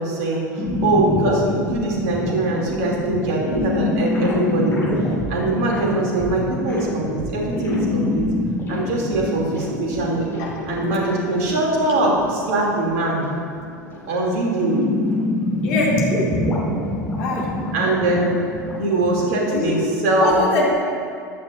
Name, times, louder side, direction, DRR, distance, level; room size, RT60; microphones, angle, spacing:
voice 1, 0.0-4.8 5.3-8.3 8.7-10.3 10.7-13.2 14.0-14.8 17.7-18.4 18.8-20.4, right 2 dB, 55° right, -2 dB, 2.8 m, -22 dB
sound 1, 0.6-19.8, left 1 dB, 25° left, 2.1 m, -26 dB
voice 2, 15.6-16.0 17.2-17.5 19.5-19.8 20.2-20.7, left 3 dB, 55° left, -3 dB, 2.6 m, -23 dB
14.5 x 11.5 x 2.6 m, 2.4 s
figure-of-eight pair, 80°, 10 cm